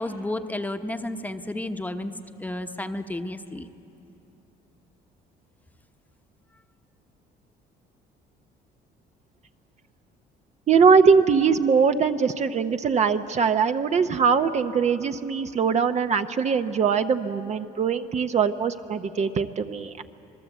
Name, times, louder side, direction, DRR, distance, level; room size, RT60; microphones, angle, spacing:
voice 1, 0.0-2.1 2.4-3.7, left 1 dB, 10° left, 7 dB, 1.0 m, -31 dB
voice 2, 10.7-20.0, right 6 dB, 40° right, 8 dB, 0.8 m, -21 dB
26.0 x 20.0 x 8.2 m, 2.7 s
cardioid pair, 110°, 17 cm